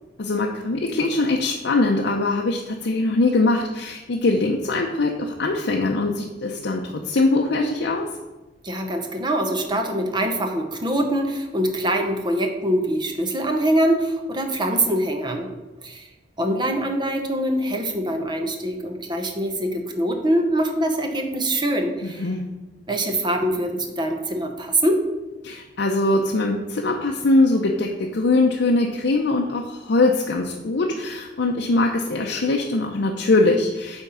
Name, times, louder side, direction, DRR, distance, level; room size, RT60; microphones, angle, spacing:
voice 1, 0.2-8.1 22.0-22.4 25.4-34.0, left 2 dB, 65° left, 1 dB, 0.6 m, -22 dB
voice 2, 8.6-15.5 15.8-16.1 16.4-22.2 22.9-25.0, right 1 dB, 25° right, 4 dB, 0.9 m, -23 dB
8.7 x 3.6 x 5.6 m, 1.1 s
head